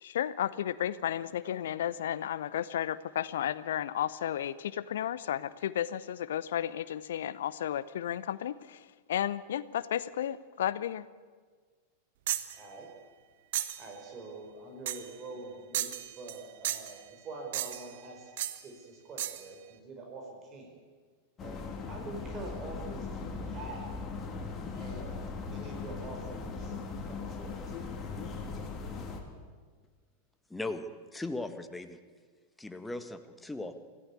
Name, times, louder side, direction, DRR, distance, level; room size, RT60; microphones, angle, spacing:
voice 1, 0.0-11.1, left 10 dB, 60° left, 18 dB, 0.7 m, -33 dB
sound 1, 12.3-12.6 13.5-13.8 14.9-15.1 15.7-16.4 16.6-17.0 17.5-17.9 18.4-18.6 19.2-19.5, right 13 dB, 55° right, 1.2 m, -34 dB
voice 2, 12.5-12.9 13.8-18.3 18.6-20.8 21.4-21.6 21.9-24.0 24.7-27.5, right 3 dB, 30° right, 2 dB, 4.9 m, -45 dB
sound 2, 21.4-29.2, left 4 dB, 25° left, 3.5 m, -39 dB
voice 3, 30.5-32.0 32.6-33.7, left 2 dB, 5° left, 9 dB, 1.7 m, -38 dB
26.0 x 16.0 x 8.4 m, 1.5 s
figure-of-eight pair, 90°, 0 cm